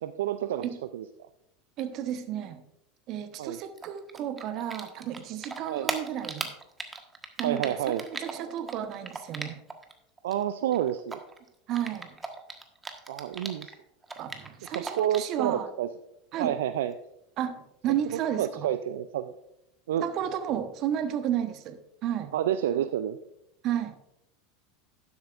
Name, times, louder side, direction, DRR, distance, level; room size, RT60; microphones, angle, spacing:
voice 1, 0.0-0.7 0.9-1.0 3.4-3.6 5.6-5.9 7.4-8.0 10.2-11.2 13.1-13.7 14.7-15.9 16.4-16.9 18.1-19.3 19.9-20.1 22.3-23.2, right 11 dB, 70° right, 11 dB, 0.4 m, -29 dB
voice 2, 1.8-2.6 3.1-6.5 7.4-9.6 11.7-12.1 14.2-15.7 16.3-16.6 17.4-18.7 20.0-22.3 23.6-23.9, right 10 dB, 50° right, 10 dB, 1.1 m, -32 dB
Typing, 3.8-5.2 5.4-9.9 10.2-13.7 14.0-15.4, right 3 dB, 15° right, 1.4 m, -37 dB
12.0 x 10.5 x 2.5 m, 0.82 s
hypercardioid pair, 85°, 0 cm